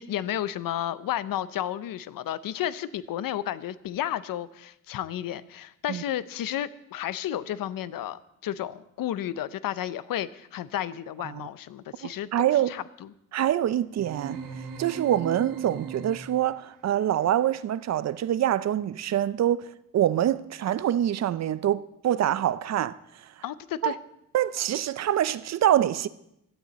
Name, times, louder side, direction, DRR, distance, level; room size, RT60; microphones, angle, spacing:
voice 1, 0.0-13.1 23.4-24.0, left 11 dB, 85° left, 0.7 m, -32 dB
voice 2, 12.0-12.7 13.3-14.4 14.8-23.0 23.8-24.0 24.3-26.1, right 11 dB, 55° right, 0.5 m, -25 dB
sound 1, 14.0-16.6, right 6 dB, 75° right, 2.1 m, -38 dB
16.5 x 12.0 x 4.1 m
wide cardioid pair, 170°, 33 cm